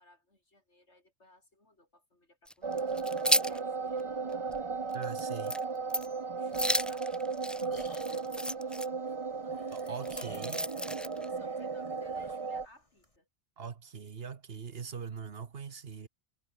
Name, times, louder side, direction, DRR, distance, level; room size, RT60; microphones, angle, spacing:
voice 1, 0.0-3.1 3.4-4.4 6.4-7.5 9.4-10.5 11.0-13.3, left 1 dB, 75° left, 6.8 m, -61 dB
sound 1, 2.5-3.6 4.0-4.1 4.5-4.6 4.9-5.2 5.5-5.6 5.9-6.2 6.5-8.9 9.7-11.3, equal, ahead, 0.6 m, -32 dB
sound 2, 2.6-12.7, right 4 dB, 30° right, 0.8 m, -35 dB
voice 2, 4.9-5.6 9.0-9.1 9.7-10.6 13.6-16.1, right 6 dB, 60° right, 1.3 m, -42 dB
sound 3, 7.1-13.2, left 1 dB, 30° left, 6.5 m, -53 dB
omnidirectional pair, 1.2 m